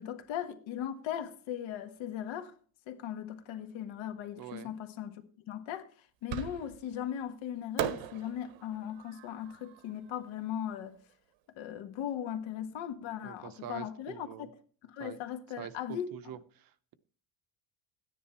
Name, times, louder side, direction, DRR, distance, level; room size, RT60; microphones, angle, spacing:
voice 1, 0.0-2.6 2.9-11.0 11.6-14.6 14.8-16.4, left 10 dB, 70° left, 1.7 m, -38 dB
voice 2, 4.4-4.7 13.2-14.5 15.0-15.2 15.6-16.9, right 10 dB, 45° right, 0.8 m, -45 dB
Fireworks, 6.3-7.0 7.8-10.9, right 11 dB, 80° right, 1.3 m, -39 dB
13.0 x 10.0 x 4.3 m
cardioid pair, 160°, 48 cm